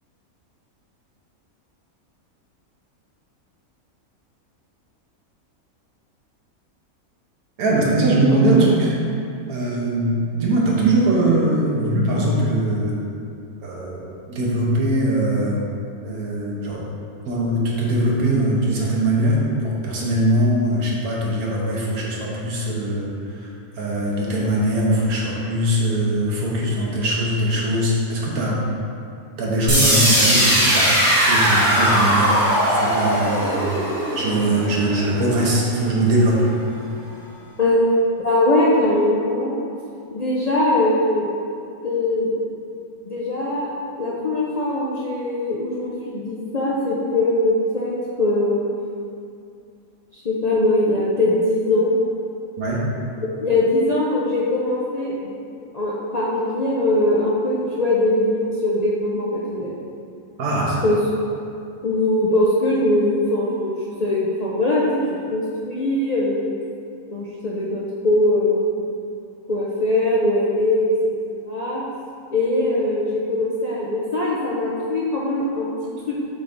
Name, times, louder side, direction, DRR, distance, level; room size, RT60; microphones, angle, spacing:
voice 1, 7.6-8.9 9.5-12.9 13.6-15.6 16.0-16.8 17.2-23.5 23.8-28.6 29.4-32.4 32.7-33.8 34.1-36.5 52.6-52.8 60.4-60.8, right 1 dB, 85° right, -3 dB, 1.6 m, -21 dB
sound 1, 29.7-35.6, equal, 20° right, 1.3 m, -19 dB
voice 2, 38.2-39.6 40.1-41.3 41.8-42.3 43.0-43.7 44.0-48.7 50.1-51.9 53.2-55.3 55.7-59.7 60.8-61.0 61.8-63.7 64.0-65.0 65.3-66.5 67.1-68.6 69.5-70.9 71.2-71.8 72.3-75.7 76.1-76.2, left 1 dB, 50° left, -6 dB, 0.5 m, -21 dB
7.4 x 3.6 x 3.9 m, 2.4 s
omnidirectional pair, 1.5 m